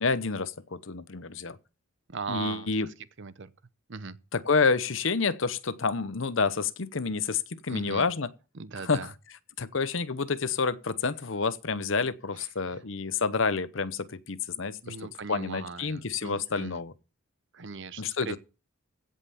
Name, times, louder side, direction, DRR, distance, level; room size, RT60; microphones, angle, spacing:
voice 1, 0.0-1.6 2.3-2.9 4.3-8.3 8.7-9.1 9.6-16.9 18.0-18.4, left 4 dB, 65° left, 0.9 m, -29 dB
voice 2, 2.1-2.7 3.2-3.5 3.9-4.2 7.7-8.0 8.5-9.1 12.4-12.5 14.8-16.8 17.5-18.4, right 4 dB, 60° right, 0.8 m, -38 dB
16.0 x 5.6 x 7.0 m
head